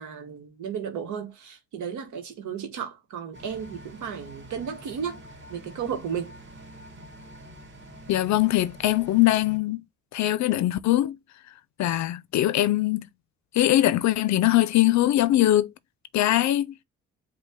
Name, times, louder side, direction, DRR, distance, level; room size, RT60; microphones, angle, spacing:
voice 1, 0.0-5.2 5.5-6.3, right 7 dB, 75° right, 1.1 m, -34 dB
sound 1, 3.3-9.6, equal, 40° right, 2.3 m, -46 dB
voice 2, 8.1-9.8 10.1-11.2 11.8-13.0 13.5-15.7 16.1-16.7, left 14 dB, 65° left, 0.5 m, -22 dB
5.2 x 2.2 x 3.4 m
cardioid pair, 90°, 30 cm